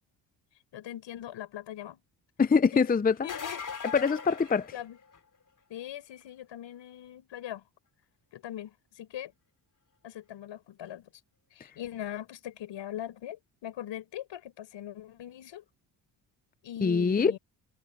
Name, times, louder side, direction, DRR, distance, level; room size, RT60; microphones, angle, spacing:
voice 1, 0.7-2.0 2.7-2.8 3.2-3.6 4.7-5.0 5.7-7.6 8.3-9.3 10.0-11.1 11.5-15.6 16.6-17.4, left 11 dB, 70° left, 6.1 m, -41 dB
voice 2, 2.4-3.1 3.9-4.7 16.8-17.4, left 5 dB, 20° left, 0.7 m, -23 dB
sound 1, 3.1-5.4 10.9-11.0 12.8-12.9, left 6 dB, 40° left, 4.0 m, -39 dB
supercardioid pair, 75°, 45 cm